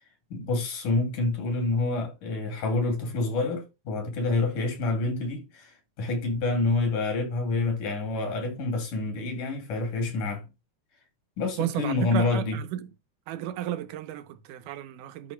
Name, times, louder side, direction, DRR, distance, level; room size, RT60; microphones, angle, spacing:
voice 1, 0.3-10.5 11.4-12.6, left 3 dB, 80° left, 4.2 m, -28 dB
voice 2, 11.6-12.9 13.3-15.3, right 12 dB, 85° right, 2.5 m, -33 dB
12.5 x 8.4 x 2.3 m
omnidirectional pair, 3.6 m